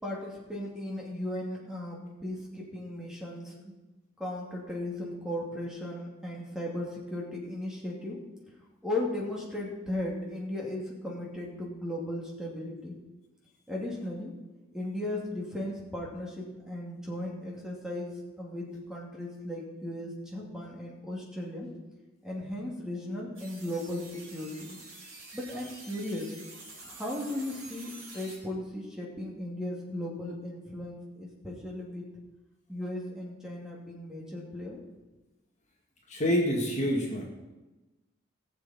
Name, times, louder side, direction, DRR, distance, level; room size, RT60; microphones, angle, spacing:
voice 1, 0.0-3.7 4.2-8.2 8.8-13.0 13.7-14.3 14.7-21.8 22.2-24.8 25.3-26.4 26.8-32.1 32.7-34.8, left 1 dB, 5° right, -3 dB, 2.5 m, -36 dB
sound 1, 23.3-28.4, right 3 dB, 80° right, 5.3 m, -48 dB
voice 2, 36.1-37.2, equal, 35° left, -1 dB, 2.0 m, -27 dB
19.5 x 7.5 x 4.3 m, 1.1 s
head